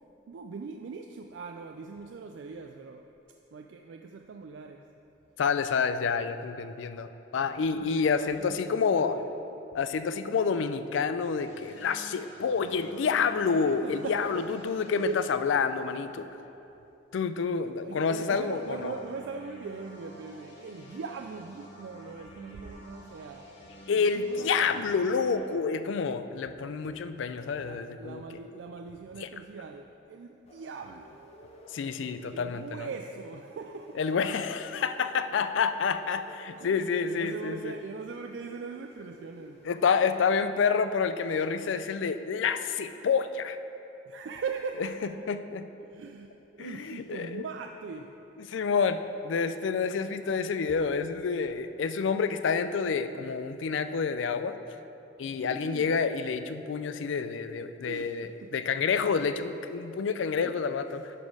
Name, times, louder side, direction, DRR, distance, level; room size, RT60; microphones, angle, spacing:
voice 1, 0.3-3.1 3.5-4.9 7.7-8.7 8.9-9.2 13.7-14.7 14.9-15.2 17.8-24.9 27.6-31.3 32.1-34.0 36.6-39.7 44.1-45.1 45.9-48.2 55.4-55.9 57.9-58.5 60.4-60.5, right 5 dB, 70° right, 4 dB, 0.3 m, -41 dB
voice 2, 5.4-9.2 9.7-16.3 17.1-18.9 23.9-28.2 29.2-29.3 31.7-32.9 34.0-37.7 39.6-43.6 45.3-45.6 46.6-47.5 48.4-54.5 55.2-61.1, left 5 dB, 80° left, 11 dB, 0.4 m, -28 dB
sound 1, 11.4-16.5 18.1-25.4, right 1 dB, 65° left, 1.6 m, -50 dB
sound 2, 30.4-40.3, left 1 dB, 35° left, 0.8 m, -53 dB
11.0 x 4.3 x 4.7 m, 2.9 s
head